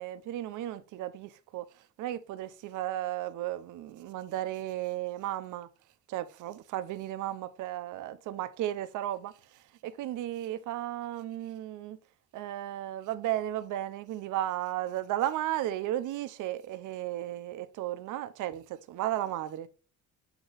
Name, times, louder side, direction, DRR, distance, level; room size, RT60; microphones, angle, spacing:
voice 1, 0.0-1.7 2.0-5.7 6.1-9.3 9.8-12.0 12.3-19.7, right 13 dB, 85° right, 0.7 m, -34 dB
8.0 x 2.9 x 3.9 m
cardioid pair, 90°, 30 cm